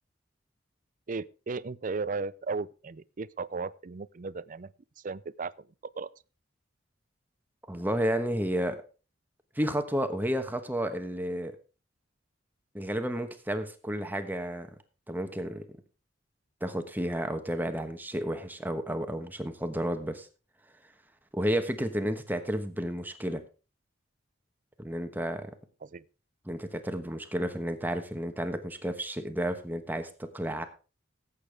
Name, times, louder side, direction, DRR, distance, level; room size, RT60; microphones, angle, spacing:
voice 1, 1.1-4.7 5.0-5.7 5.9-6.1 25.8-26.0, right 4 dB, 45° right, 0.5 m, -35 dB
voice 2, 7.7-8.8 9.5-11.6 12.7-14.7 15.1-15.6 16.6-20.3 21.3-23.4 24.8-25.5 26.5-30.6, equal, 10° right, 1.2 m, -31 dB
17.0 x 8.4 x 3.5 m
head